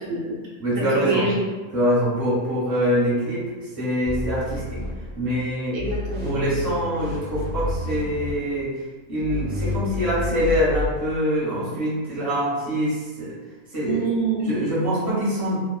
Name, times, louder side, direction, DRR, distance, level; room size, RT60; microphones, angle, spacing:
voice 1, 0.0-0.4 0.9-1.4 5.7-6.3 13.8-14.5, right 3 dB, 90° right, -4 dB, 1.1 m, -26 dB
voice 2, 0.6-1.3 1.7-4.8 5.1-5.8 6.2-8.8 9.1-13.3 13.7-14.0 14.4-15.6, equal, 30° right, -9 dB, 0.9 m, -24 dB
sound 1, 4.0-5.4 5.8-8.6 9.2-10.9, left 2 dB, 55° right, 0.6 m, -30 dB
2.4 x 2.3 x 2.3 m, 1.4 s
omnidirectional pair, 1.5 m